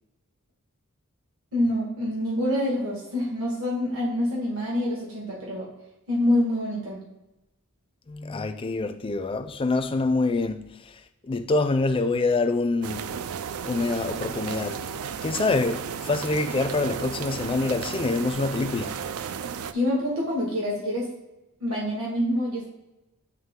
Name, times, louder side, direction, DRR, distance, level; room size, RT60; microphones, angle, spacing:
voice 1, 1.5-5.7 6.1-7.0 19.7-21.1 21.6-22.7, left 1 dB, 70° right, 1.9 m, -26 dB
voice 2, 8.1-13.2 13.6-14.9 15.2-19.0, left 3 dB, 25° left, 0.4 m, -26 dB
sound 1, 12.8-19.7, right 7 dB, 90° right, 0.4 m, -34 dB
9.0 x 3.1 x 3.7 m
head